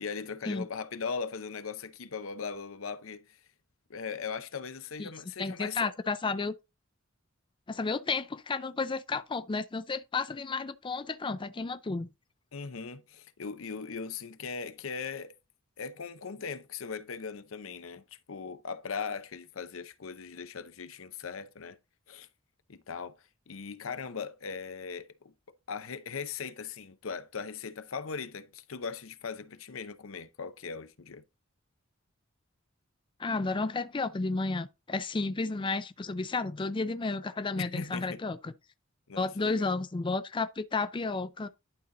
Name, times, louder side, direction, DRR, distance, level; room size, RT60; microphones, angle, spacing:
voice 1, 0.0-3.4 3.9-5.9 12.5-15.3 15.8-21.8 22.1-22.3 22.7-23.1 23.5-25.3 25.7-31.2 37.6-38.2 39.1-39.7, left 5 dB, 80° left, 0.7 m, -39 dB
voice 2, 5.4-6.5 7.7-12.1 33.2-38.5 39.2-41.5, left 3 dB, 25° left, 0.4 m, -32 dB
11.5 x 4.0 x 3.9 m
head